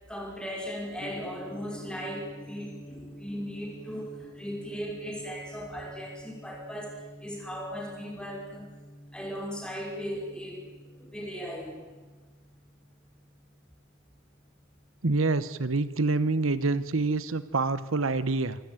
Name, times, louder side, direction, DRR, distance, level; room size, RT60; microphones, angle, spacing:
voice 1, 0.1-8.7 9.1-11.8, equal, 5° left, -1 dB, 5.4 m, -37 dB
Gong, 1.0-15.1, equal, 35° left, 3.1 m, -49 dB
voice 2, 15.0-18.6, right 3 dB, 85° right, 14 dB, 1.1 m, -26 dB
27.0 x 13.5 x 9.2 m, 1.3 s
head